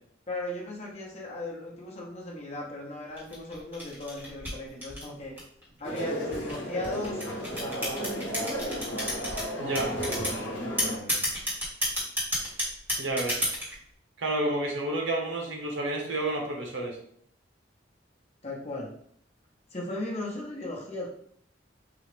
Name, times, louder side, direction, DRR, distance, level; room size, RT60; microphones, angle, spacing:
voice 1, 0.3-5.3 5.8-7.2 7.6-8.1 9.9-10.3 10.6-11.3 18.4-18.9 19.7-21.1, left 2 dB, 35° left, -2 dB, 0.8 m, -37 dB
sound 1, 3.2-5.6 6.3-9.4 9.7-10.4 10.8-13.7, equal, 10° right, 1.3 m, -30 dB
sound 2, 5.8-11.0, equal, 80° left, 0.8 m, -33 dB
voice 2, 9.6-9.9 13.0-13.4 14.2-16.9, right 2 dB, 85° right, 0 dB, 1.0 m, -30 dB
3.8 x 2.4 x 3.3 m, 0.65 s
head